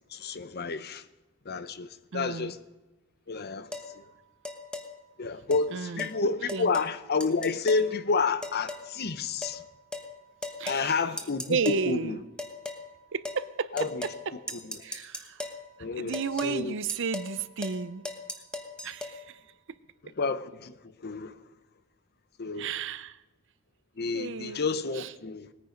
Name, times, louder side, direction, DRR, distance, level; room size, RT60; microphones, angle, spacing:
voice 1, 0.1-1.0 1.5-2.6 3.3-3.7 5.2-9.6 10.7-11.6 11.9-12.2 13.7-13.9 15.8-16.8 20.2-20.7 21.0-21.3 22.4-22.7 24.0-25.5, left 4 dB, 50° left, 0.8 m, -30 dB
voice 2, 2.1-2.6 5.7-6.7 10.6-11.0 11.5-12.3 13.1-14.4 14.8-15.4 16.0-18.1 18.8-19.4 22.6-23.2 24.1-24.6 24.9-25.1, right 5 dB, 60° right, 0.6 m, -33 dB
sound 1, 3.7-3.9 4.5-4.9 5.5-5.7 6.0-6.1 6.5-6.9 7.2-7.9 8.4-8.9 9.4-9.6 9.9-10.1 10.4-10.8 11.2-11.8 12.4-12.8 13.3-13.4 13.8-14.2 14.5-15.6 16.1-16.6 16.9-17.3 17.6-17.8 18.1-19.2, left 2 dB, 5° left, 1.2 m, -37 dB
20.0 x 9.5 x 5.2 m
head